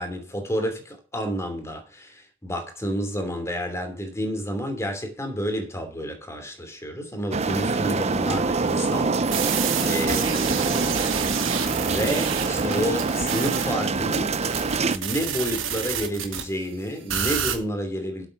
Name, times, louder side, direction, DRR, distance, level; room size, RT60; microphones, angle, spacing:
voice 1, 0.0-9.4 9.8-11.1 11.9-14.4 14.9-18.3, equal, 15° left, 3.0 m, -30 dB
sound 1, 7.3-15.0, right 3 dB, 30° right, 0.7 m, -25 dB
sound 2, 9.2-16.4 17.1-17.6, right 8 dB, 70° right, 2.0 m, -29 dB
8.1 x 7.4 x 7.7 m
head